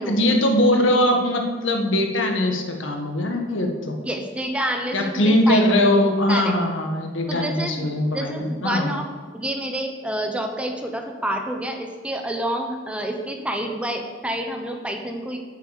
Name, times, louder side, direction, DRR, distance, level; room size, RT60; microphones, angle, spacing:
voice 1, 0.1-3.9 4.9-8.9, left 1 dB, 80° left, 3 dB, 1.6 m, -21 dB
voice 2, 4.0-5.9 6.3-6.5 7.3-9.1 9.3-15.4, right 1 dB, 5° right, 3 dB, 1.0 m, -28 dB
9.0 x 8.6 x 6.6 m, 1.5 s
head